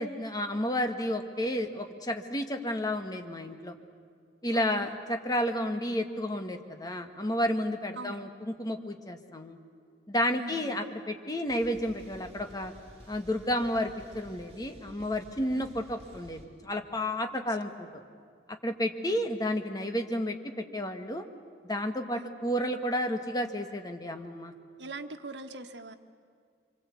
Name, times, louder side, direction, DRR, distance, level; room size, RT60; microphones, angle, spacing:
voice 1, 0.0-3.7 4.4-9.6 10.1-12.7 13.1-17.9 18.6-21.3 21.6-24.5, left 1 dB, 20° left, 6 dB, 1.5 m, -31 dB
voice 2, 4.5-4.9 8.0-8.4 10.4-10.8 15.5-15.8 17.3-17.4 19.0-19.3 22.1-22.3 24.8-25.9, right 2 dB, 85° right, 7 dB, 1.4 m, -43 dB
sound 1, 11.4-16.5, equal, 40° right, 4.2 m, -52 dB
25.5 x 24.5 x 8.4 m, 2.1 s
head